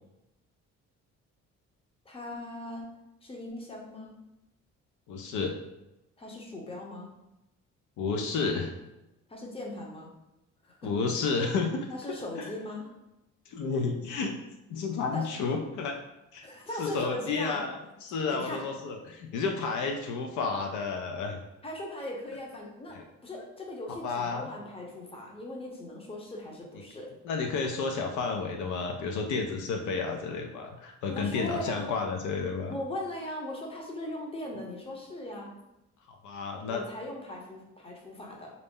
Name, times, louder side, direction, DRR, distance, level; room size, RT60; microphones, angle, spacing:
voice 1, 2.1-2.9 3.2-4.1 6.2-7.1 9.3-10.1 10.6-10.9 11.9-12.9 15.1-15.3 16.4-17.6 18.3-18.6 21.6-27.1 31.1-31.9 32.6-35.5 36.7-38.5, left 1 dB, 20° left, -1 dB, 0.7 m, -39 dB
voice 2, 5.1-5.6 8.0-8.7 10.8-11.7 12.4-12.5 13.5-14.3 14.7-16.0 16.3-16.4 16.8-21.4 22.9-23.0 24.0-24.5 27.3-32.8 36.2-36.8, left 4 dB, 75° left, 3 dB, 0.5 m, -31 dB
2.5 x 2.0 x 3.5 m, 0.93 s
cardioid pair, 90°, 30 cm